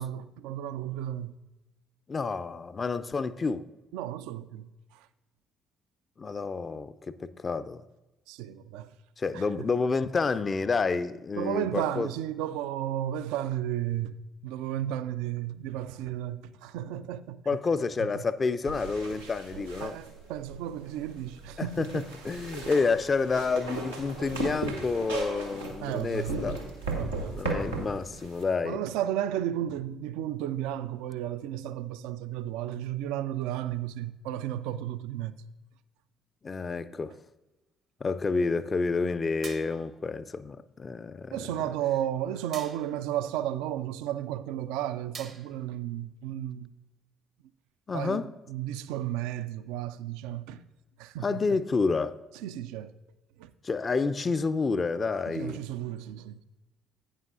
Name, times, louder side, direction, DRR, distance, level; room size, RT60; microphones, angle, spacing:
voice 1, 0.0-1.4 3.9-5.1 8.3-8.9 9.3-9.6 11.4-14.2 14.4-17.4 18.0-18.2 19.8-22.1 25.8-26.4 26.9-27.8 28.6-35.4 41.3-46.7 47.9-50.6 51.0-51.6 52.4-52.9 53.4-53.5 55.3-56.4, right 11 dB, 65° right, 0.3 m, -33 dB
voice 2, 2.1-3.7 6.2-7.8 9.2-12.1 17.5-20.0 21.6-26.6 27.3-28.8 36.4-37.2 38.0-41.4 47.9-48.4 51.2-52.2 53.6-55.6, left 4 dB, 30° left, 0.5 m, -29 dB
sound 1, 18.7-28.4, right 2 dB, 90° right, 1.3 m, -36 dB
sound 2, 39.4-40.0 42.5-43.1 45.1-45.7, right 6 dB, 45° right, 0.7 m, -45 dB
11.0 x 9.3 x 2.5 m
figure-of-eight pair, 45°, 0 cm